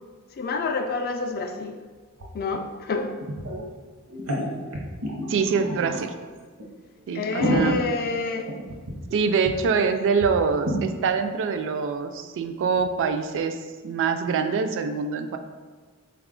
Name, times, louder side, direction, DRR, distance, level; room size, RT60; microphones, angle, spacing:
voice 1, 0.4-1.8 2.3-3.1 7.1-8.6, left 4 dB, 45° left, 5 dB, 0.3 m, -28 dB
sound 1, 2.2-2.3 2.5-2.6 3.2-3.6 4.1-6.1 6.6-6.7 7.1-9.1 9.4-9.5 9.8-9.9 10.2-10.3 10.6-10.8, equal, 80° right, 0.7 m, -28 dB
voice 2, 5.3-6.1 7.1-7.8 9.1-13.6 13.8-15.4, right 5 dB, 60° right, 8 dB, 0.3 m, -24 dB
4.2 x 2.3 x 3.6 m, 1.4 s
head